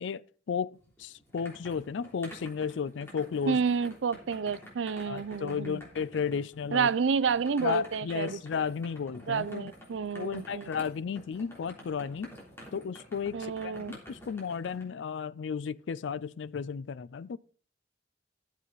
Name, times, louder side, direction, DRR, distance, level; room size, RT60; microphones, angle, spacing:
voice 1, 0.0-3.6 5.1-6.9 7.6-9.7 10.1-12.3 12.7-17.4, left 6 dB, 80° left, 0.4 m, -34 dB
sound 1, 0.8-14.8, equal, 15° left, 3.4 m, -50 dB
voice 2, 3.5-5.8 6.7-8.4 9.3-10.7 13.3-14.0, right 6 dB, 85° right, 0.4 m, -29 dB
12.5 x 7.6 x 4.0 m
head